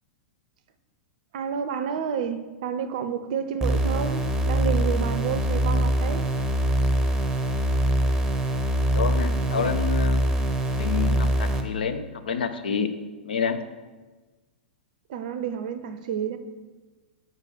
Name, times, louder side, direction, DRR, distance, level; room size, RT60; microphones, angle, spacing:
voice 1, 1.3-6.3 15.1-16.4, right 7 dB, 55° right, 0.5 m, -30 dB
sound 1, 3.6-11.6, right 1 dB, 10° right, 0.7 m, -23 dB
voice 2, 8.9-10.3 10.8-12.9 13.3-13.6, left 6 dB, 70° left, 0.6 m, -28 dB
4.8 x 4.6 x 6.1 m
figure-of-eight pair, 100°, 5 cm